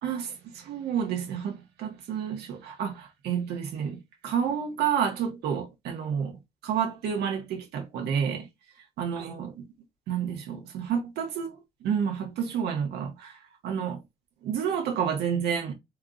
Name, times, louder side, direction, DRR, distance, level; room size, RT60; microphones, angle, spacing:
voice 1, 0.0-6.3 6.6-8.5 9.0-9.6 10.1-13.4 13.6-14.0 14.4-15.7, right 7 dB, 75° right, 1.5 m, -30 dB
4.7 x 3.7 x 2.4 m
hypercardioid pair, 50°, 17 cm